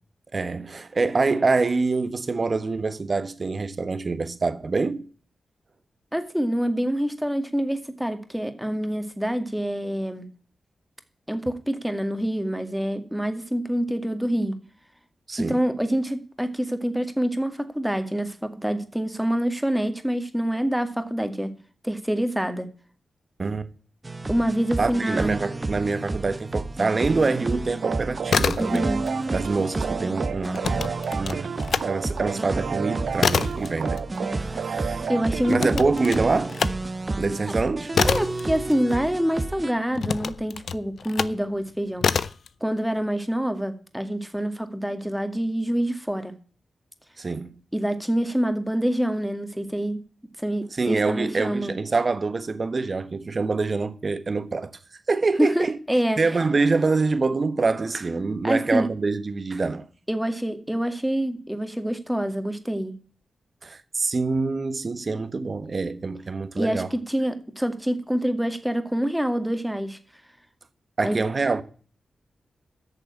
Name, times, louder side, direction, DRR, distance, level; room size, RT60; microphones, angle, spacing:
voice 1, 0.3-5.0 15.3-15.6 23.4-23.7 24.8-28.9 29.3-31.5 31.8-34.0 34.4-35.1 35.5-36.6 37.2-37.9 47.2-47.6 50.7-54.8 55.1-55.8 56.2-59.9 63.6-66.9 71.0-71.6, right 3 dB, 50° right, 1.3 m, -25 dB
voice 2, 6.1-10.3 11.3-14.6 15.4-21.5 21.8-22.7 24.3-25.4 28.6-29.0 35.1-35.9 38.0-42.3 42.6-46.3 47.7-50.0 50.4-51.7 55.4-56.2 58.4-58.9 60.1-62.9 66.6-70.0 71.0-71.2, equal, 5° right, 2.1 m, -26 dB
sound 1, 24.0-39.7, right 2 dB, 35° right, 1.1 m, -31 dB
sound 2, 27.8-35.8, right 7 dB, 75° right, 0.7 m, -32 dB
sound 3, 28.1-29.1 29.4-31.9 32.3-39.3 39.9-41.4 42.0-42.5, left 6 dB, 75° left, 0.5 m, -27 dB
9.3 x 6.8 x 8.5 m
supercardioid pair, 40°, 0 cm